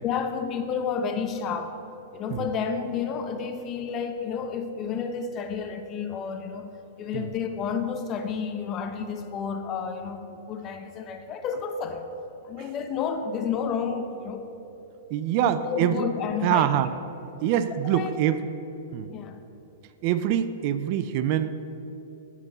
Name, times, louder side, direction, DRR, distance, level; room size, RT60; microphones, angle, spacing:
voice 1, 0.0-1.8 2.1-6.7 7.0-12.1 12.4-14.5 15.4-16.9 17.7-18.1 19.1-19.4, left 6 dB, 35° left, 7 dB, 0.8 m, -31 dB
voice 2, 15.1-16.0 16.4-16.9 17.4-18.4 18.9-19.1 20.0-21.5, right 11 dB, 50° right, 12 dB, 0.4 m, -24 dB
8.4 x 5.3 x 6.7 m, 3.0 s
hypercardioid pair, 115°, 0 cm